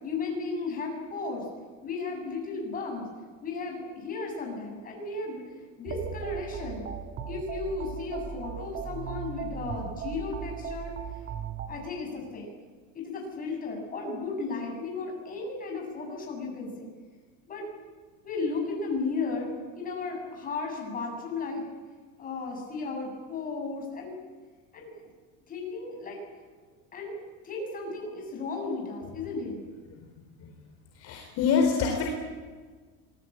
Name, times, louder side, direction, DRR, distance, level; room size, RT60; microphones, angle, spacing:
voice 1, 0.0-1.5 1.8-3.1 3.4-5.4 5.8-6.9 7.3-10.9 11.7-12.5 12.9-16.9 17.5-17.7 18.2-21.6 22.2-24.1 24.7-25.1 25.5-26.2 26.9-27.2 27.4-29.6, left 3 dB, 25° left, 1 dB, 7.4 m, -34 dB
sound 1, 5.9-11.7, right 7 dB, 30° right, 2.0 m, -37 dB
voice 2, 30.9-32.1, left 6 dB, 45° left, 1 dB, 4.2 m, -26 dB
26.0 x 20.0 x 8.8 m, 1.5 s
cardioid pair, 170°, 35 cm